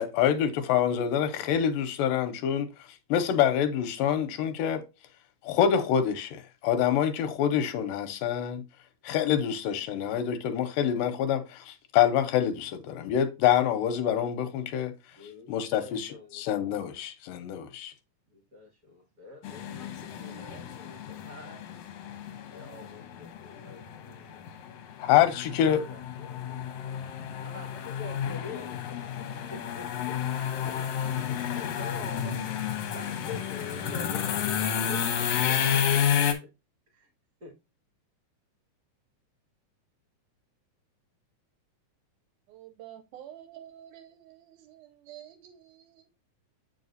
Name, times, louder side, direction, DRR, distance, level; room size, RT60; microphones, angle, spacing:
voice 1, 0.0-4.8 5.4-8.6 9.0-15.2 15.5-17.9 25.0-25.8, left 9 dB, 90° left, 2.3 m, -26 dB
voice 2, 15.2-16.4 18.3-21.8 22.5-24.5 25.7-27.0 27.4-35.5 36.2-36.5 36.9-37.1 37.4-37.6, left 3 dB, 30° right, 2.1 m, -46 dB
sound 1, 19.4-36.3, left 8 dB, 70° left, 1.5 m, -31 dB
voice 3, 42.5-46.1, right 11 dB, 75° right, 2.0 m, -49 dB
7.8 x 4.8 x 2.6 m
omnidirectional pair, 3.8 m